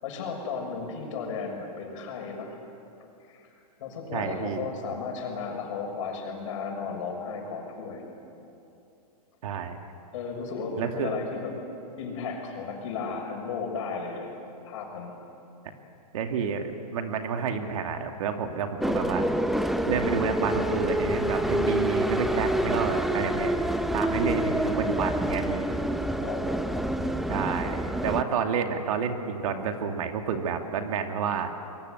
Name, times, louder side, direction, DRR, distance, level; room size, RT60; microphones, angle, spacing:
voice 1, 0.0-2.6 3.2-8.0 10.1-11.5 12.0-14.3 14.6-15.2 26.2-27.2, left 5 dB, 55° left, 2 dB, 6.7 m, -35 dB
voice 2, 4.1-4.6 9.4-9.8 10.8-11.1 16.1-19.2 19.9-23.6 23.9-25.7 27.3-31.5, right 6 dB, 60° right, 5 dB, 2.6 m, -29 dB
sound 1, 18.8-28.2, right 1 dB, ahead, 0.7 m, -27 dB
28.5 x 23.0 x 8.1 m, 2.7 s
hypercardioid pair, 145°, 20 cm